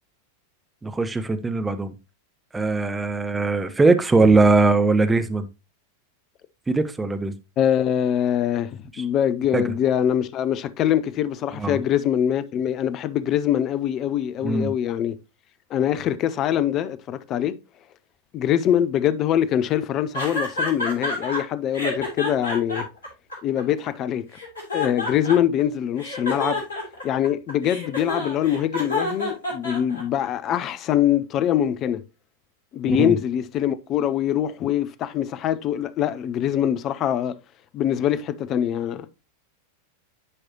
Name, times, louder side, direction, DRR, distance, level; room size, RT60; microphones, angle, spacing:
voice 1, 0.8-1.9 2.5-5.5 6.7-7.3 9.0-9.1 9.5-9.7 11.6-11.8 14.4-14.7 32.9-33.1, right 3 dB, 10° right, 0.7 m, -20 dB
voice 2, 7.6-15.2 15.7-17.6 18.3-22.9 23.4-24.2 24.7-26.6 27.0-32.0 32.7-37.3 37.7-39.1, left 10 dB, 35° left, 0.6 m, -23 dB
sound 1, 20.1-21.4 21.7-23.9 24.3-25.6 26.0-30.3, left 1 dB, 70° left, 3.4 m, -29 dB
9.8 x 4.9 x 2.9 m
figure-of-eight pair, 90°, 0 cm